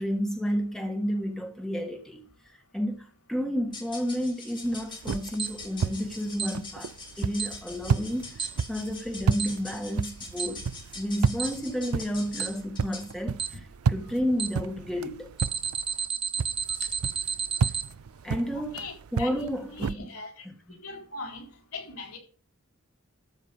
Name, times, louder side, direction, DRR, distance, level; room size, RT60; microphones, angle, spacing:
voice 1, 0.0-2.3 2.7-8.4 8.7-10.7 10.9-13.6 13.9-15.3 18.2-20.1 20.4-20.8, equal, 5° left, 1.7 m, -31 dB
sound 1, 3.6-13.2, left 3 dB, 20° left, 3.0 m, -44 dB
sound 2, 4.6-16.1 16.4-19.9, right 5 dB, 85° right, 0.4 m, -32 dB
Alarm, 5.4-5.5 6.4-6.5 7.4-7.5 8.4-8.5 9.4-9.5 10.4-10.5 11.4-11.5 12.4-12.5 13.4-13.5 14.4-14.5 15.4-17.8, right 6 dB, 25° right, 1.1 m, -29 dB
voice 2, 18.5-20.3 20.8-21.4 21.7-22.2, left 3 dB, 90° left, 4.2 m, -40 dB
13.0 x 5.6 x 7.0 m
head